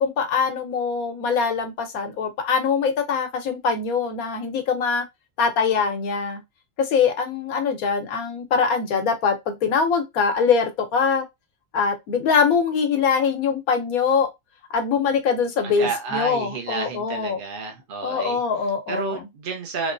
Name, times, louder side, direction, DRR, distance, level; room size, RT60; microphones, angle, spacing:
voice 1, 0.0-5.1 5.4-6.4 6.8-11.2 11.7-14.3 14.7-17.4 18.0-19.2, left 5 dB, 80° left, 1.2 m, -23 dB
voice 2, 15.6-18.4 18.9-19.9, right 4 dB, 50° right, 0.7 m, -30 dB
3.2 x 3.0 x 2.5 m
omnidirectional pair, 1.5 m